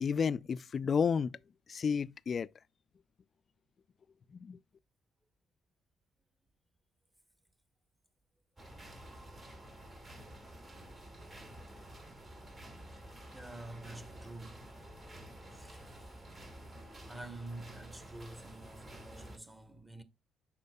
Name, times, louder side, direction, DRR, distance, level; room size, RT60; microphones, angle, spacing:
voice 1, 0.0-1.4 1.7-2.5 4.4-4.6, left 6 dB, 50° left, 0.3 m, -31 dB
sound 1, 8.6-19.4, right 1 dB, 35° right, 2.6 m, -51 dB
voice 2, 13.3-16.0 17.0-20.0, right 2 dB, 15° right, 1.3 m, -49 dB
11.5 x 4.3 x 2.2 m
hypercardioid pair, 50°, 0 cm